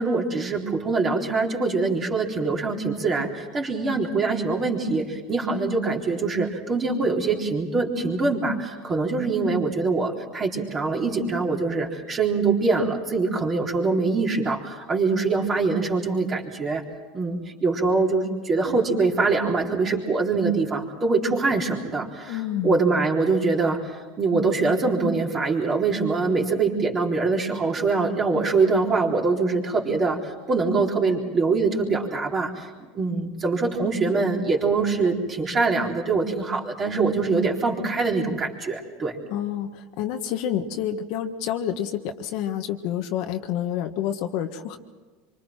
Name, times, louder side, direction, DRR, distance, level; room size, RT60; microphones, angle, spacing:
voice 1, 0.0-16.8 17.1-22.4 22.6-23.8 24.2-39.2, right 3 dB, 25° right, 0 dB, 3.8 m, -24 dB
voice 2, 22.3-22.8 39.3-44.8, left 10 dB, 60° left, 5 dB, 1.6 m, -28 dB
26.5 x 25.0 x 4.5 m, 1.4 s
supercardioid pair, 140°, 0 cm